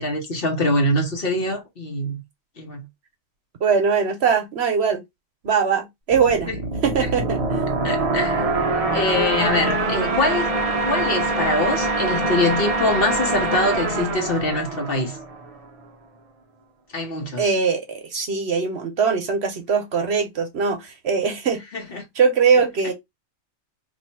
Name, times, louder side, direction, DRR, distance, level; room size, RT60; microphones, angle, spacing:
voice 1, 0.0-2.2 2.6-2.8 6.5-6.6 7.0-7.1 7.8-8.5 8.9-10.5 10.9-15.2 16.9-17.5 21.7-22.0, left 2 dB, 50° left, 1.0 m, -24 dB
voice 2, 3.6-5.0 5.4-6.5 6.8-7.4 17.4-21.6 22.2-22.9, right 6 dB, 60° right, 1.0 m, -21 dB
sound 1, 6.1-15.6, right 3 dB, 40° right, 0.6 m, -24 dB
2.8 x 2.6 x 4.3 m
omnidirectional pair, 1.4 m